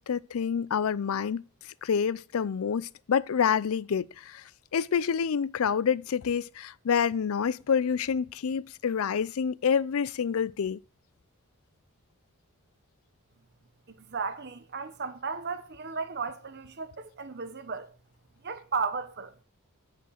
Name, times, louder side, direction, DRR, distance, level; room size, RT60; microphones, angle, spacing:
voice 1, 0.0-1.4 1.8-4.1 4.3-4.4 4.7-10.8, left 7 dB, 70° left, 0.4 m, -27 dB
voice 2, 14.1-17.9 18.4-19.4, right 5 dB, 50° right, 0.9 m, -34 dB
9.1 x 5.2 x 6.3 m
head